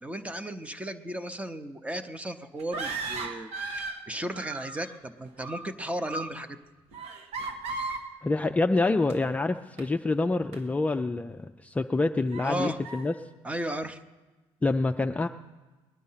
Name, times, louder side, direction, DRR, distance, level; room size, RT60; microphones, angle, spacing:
voice 1, 0.0-6.6 12.4-12.8 13.4-14.0, right 1 dB, 10° right, 10 dB, 0.7 m, -35 dB
sound 1, 2.6-4.0 4.3-5.0 5.2-5.7 6.1-6.4 6.9-8.1 9.1-9.2 9.8-9.9 10.5-10.6 11.3-11.4 12.3-12.5 12.8-13.0, right 3 dB, 75° right, 1.5 m, -36 dB
voice 2, 8.2-13.1 14.6-15.3, left 3 dB, 15° left, 5 dB, 0.4 m, -26 dB
20.0 x 11.0 x 5.7 m, 1.3 s
cardioid pair, 125°, 11 cm